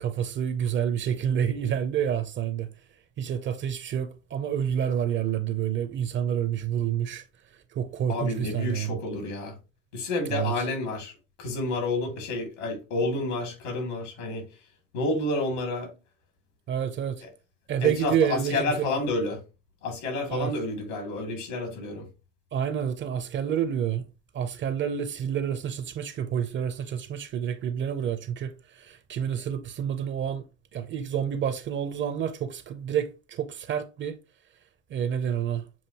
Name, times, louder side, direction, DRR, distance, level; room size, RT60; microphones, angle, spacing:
voice 1, 0.0-2.7 3.2-7.2 7.7-9.0 10.3-10.5 16.7-17.2 17.7-18.9 20.3-20.5 22.5-24.0 24.3-30.4 30.7-34.2 34.9-35.6, right 9 dB, 30° right, 0.6 m, -28 dB
voice 2, 8.1-9.6 9.9-14.4 14.9-15.9 17.8-19.4 19.8-22.1, left 2 dB, 75° left, 2.5 m, -30 dB
7.1 x 2.5 x 2.9 m
hypercardioid pair, 95°, 36 cm